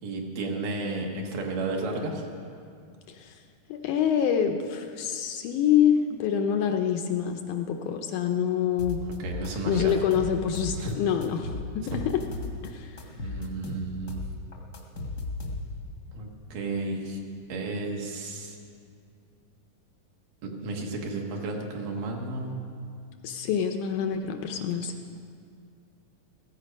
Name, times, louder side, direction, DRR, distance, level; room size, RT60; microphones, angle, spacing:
voice 1, 0.0-2.2 9.2-9.9 10.8-10.9 11.9-12.0 13.2-14.2 16.1-17.2 17.5-18.6 20.4-22.6 24.5-24.6, right 2 dB, 75° right, 0 dB, 3.2 m, -33 dB
voice 2, 3.1-3.4 3.7-9.0 9.7-12.2 12.6-13.0 23.2-24.9, left 8 dB, 75° left, 5 dB, 1.9 m, -26 dB
sound 1, 8.8-10.9 11.2-12.7 13.0-15.9, left 3 dB, 50° left, 1.2 m, -35 dB
16.0 x 15.0 x 5.2 m, 2.3 s
omnidirectional pair, 3.9 m